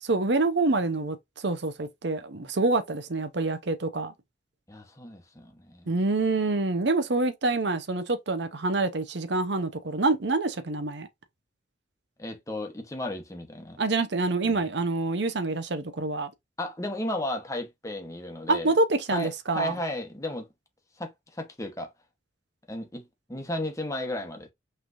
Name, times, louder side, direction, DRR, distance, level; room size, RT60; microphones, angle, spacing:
voice 1, 0.0-4.1 5.9-11.1 13.8-16.3 18.5-19.7, right 3 dB, 60° right, 0.8 m, -26 dB
voice 2, 4.7-6.0 12.2-13.8 14.4-14.6 16.6-18.7 19.1-20.5 21.0-21.9 22.7-24.5, left 1 dB, 15° left, 1.1 m, -34 dB
5.7 x 3.3 x 2.6 m
head